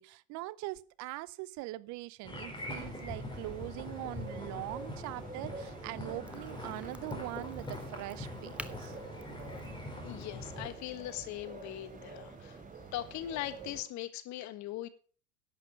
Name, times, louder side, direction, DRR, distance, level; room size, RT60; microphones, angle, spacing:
voice 1, 0.0-9.0, right 19 dB, 50° right, 0.7 m, -42 dB
sound 1, 2.2-10.7, left 2 dB, 10° left, 4.9 m, -43 dB
sound 2, 2.7-13.8, right 4 dB, 20° right, 3.4 m, -48 dB
Crack, 6.3-11.7, right 1 dB, 5° right, 0.8 m, -51 dB
voice 2, 10.0-12.6 12.9-14.9, left 13 dB, 50° left, 1.5 m, -40 dB
11.0 x 8.3 x 5.9 m
hypercardioid pair, 95°, 36 cm